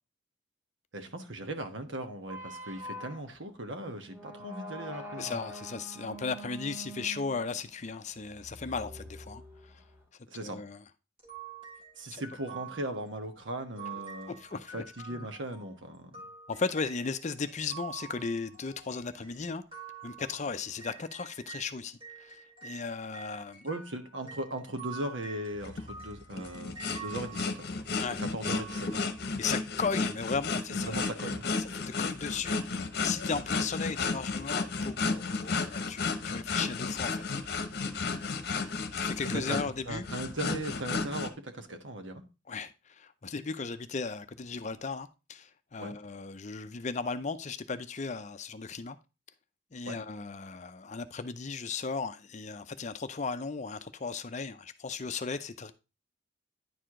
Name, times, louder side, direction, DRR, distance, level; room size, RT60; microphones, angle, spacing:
voice 1, 0.9-5.4 10.3-10.6 12.0-14.4 14.7-16.1 23.6-27.7 28.2-29.0 30.7-31.4 39.2-42.2 45.8-46.0 49.9-50.0, right 1 dB, 75° right, 1.2 m, -38 dB
sound 1, 2.2-10.0, equal, 10° right, 2.4 m, -45 dB
voice 2, 5.2-9.4 10.4-10.8 12.1-12.2 14.3-14.8 15.1-15.2 16.5-19.6 20.0-23.6 28.0-28.2 29.4-31.0 31.6-37.7 38.9-40.1 42.5-49.0 49.7-55.7, left 4 dB, 40° left, 0.5 m, -36 dB
sound 2, 11.2-21.7 22.0-29.4, right 7 dB, 30° right, 2.6 m, -48 dB
sound 3, 25.6-41.3, left 4 dB, 55° left, 1.0 m, -33 dB
10.0 x 4.8 x 3.7 m
head